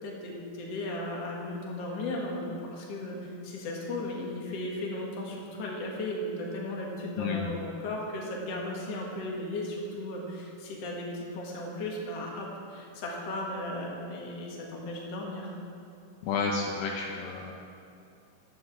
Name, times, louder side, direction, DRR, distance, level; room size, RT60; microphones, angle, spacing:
voice 1, 0.0-15.5, left 1 dB, 50° left, -2 dB, 2.5 m, -36 dB
voice 2, 7.2-7.5 16.2-17.5, left 5 dB, 75° left, 0 dB, 2.5 m, -31 dB
10.0 x 9.0 x 7.4 m, 2.7 s
omnidirectional pair, 4.3 m